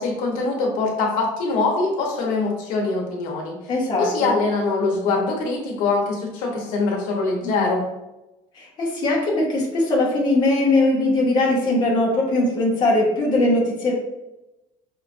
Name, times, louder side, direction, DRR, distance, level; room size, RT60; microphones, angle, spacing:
voice 1, 0.0-3.6 4.0-7.9, left 3 dB, 75° left, 0 dB, 0.9 m, -23 dB
voice 2, 3.7-4.4 7.4-7.7 8.5-13.9, left 2 dB, 30° left, -3 dB, 0.8 m, -20 dB
5.3 x 2.2 x 2.6 m, 0.97 s
cardioid pair, 180°, 14 cm